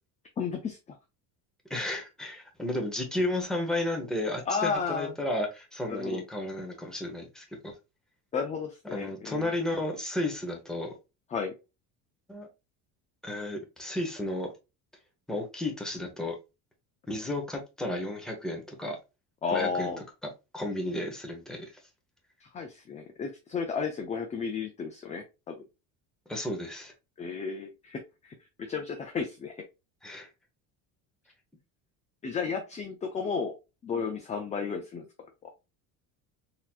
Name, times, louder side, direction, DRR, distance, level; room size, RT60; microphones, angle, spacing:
voice 1, 0.4-1.0 4.5-5.1 5.9-6.2 8.3-9.5 11.3-11.5 19.4-20.0 22.4-25.6 27.2-29.6 32.2-33.5 33.8-35.1 35.4-35.5, left 5 dB, 20° left, 5 dB, 0.4 m, -33 dB
voice 2, 1.7-7.7 8.9-10.9 12.3-12.5 13.2-14.5 15.3-16.4 17.1-19.0 19.5-19.9 20.5-21.7 26.3-26.9 30.0-30.3, left 1 dB, ahead, 1 dB, 0.9 m, -33 dB
4.1 x 2.8 x 2.4 m, 0.27 s
cardioid pair, 130°, 38 cm